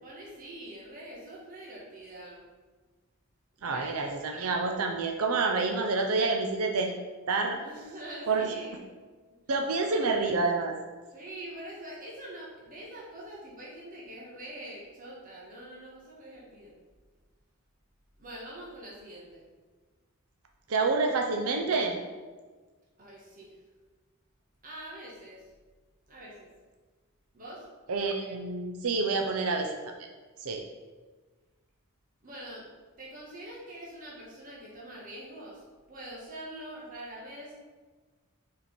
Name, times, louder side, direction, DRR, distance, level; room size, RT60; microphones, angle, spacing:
voice 1, 0.0-2.4 3.6-4.0 7.5-8.8 9.5-9.7 11.1-16.7 18.2-19.4 23.0-23.6 24.6-25.5 26.1-26.5 27.3-27.7 32.2-32.7 33.0-37.5, right 1 dB, 40° right, -6 dB, 1.5 m, -44 dB
voice 2, 3.6-6.9 7.3-7.6 8.3-8.5 9.5-10.7 20.7-22.0 27.9-29.8 30.4-30.6, right 3 dB, 75° right, 3 dB, 0.6 m, -28 dB
5.0 x 4.7 x 5.2 m, 1.4 s
head